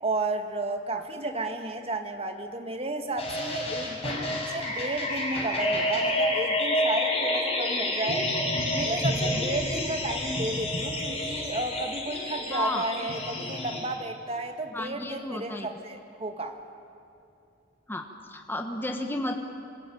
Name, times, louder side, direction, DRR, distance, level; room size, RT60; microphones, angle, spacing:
voice 1, 0.0-8.3 8.7-16.6, right 2 dB, 35° right, 6 dB, 1.8 m, -33 dB
sound 1, 3.2-13.8, left 1 dB, 35° left, 6.6 m, -29 dB
voice 2, 12.5-12.8 14.7-15.7 17.9-19.4, left 1 dB, 10° left, 4 dB, 1.3 m, -32 dB
25.5 x 21.5 x 9.2 m, 2.7 s
head